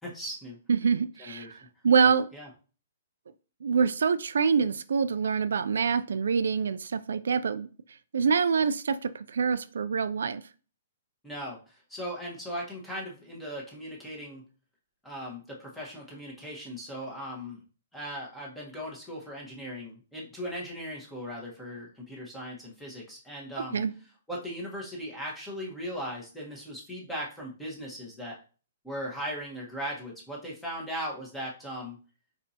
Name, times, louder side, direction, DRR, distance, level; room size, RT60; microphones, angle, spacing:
voice 1, 0.0-0.6 1.2-1.6 2.0-2.5 11.2-14.4 15.0-17.6 17.9-23.8 24.3-28.4 28.8-32.0, equal, 5° left, 1.3 m, -38 dB
voice 2, 0.7-1.6 1.8-2.3 3.6-7.7 8.1-10.4 23.7-23.9, right 6 dB, 80° right, 0.3 m, -25 dB
4.3 x 4.2 x 2.8 m
hypercardioid pair, 155°, 0 cm